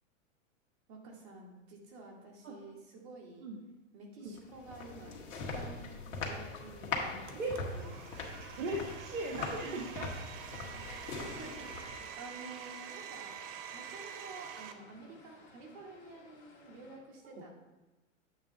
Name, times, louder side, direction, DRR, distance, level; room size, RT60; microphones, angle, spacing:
voice 1, 0.9-3.5 3.9-8.0 8.3-8.4 10.8-13.4 13.7-17.6, right 3 dB, 50° right, 0 dB, 2.2 m, -50 dB
sound 1, 4.4-12.2, left 3 dB, 70° left, 1.6 m, -41 dB
Domestic sounds home sounds, 7.3-14.7, right 8 dB, 30° right, 0.6 m, -47 dB
sound 2, 7.6-17.0, left 3 dB, 30° left, 2.7 m, -60 dB
voice 2, 8.6-10.1 17.4-17.5, right 2 dB, 80° right, -2 dB, 1.4 m, -38 dB
8.7 x 3.7 x 5.8 m, 1.1 s
hypercardioid pair, 125°, 39 cm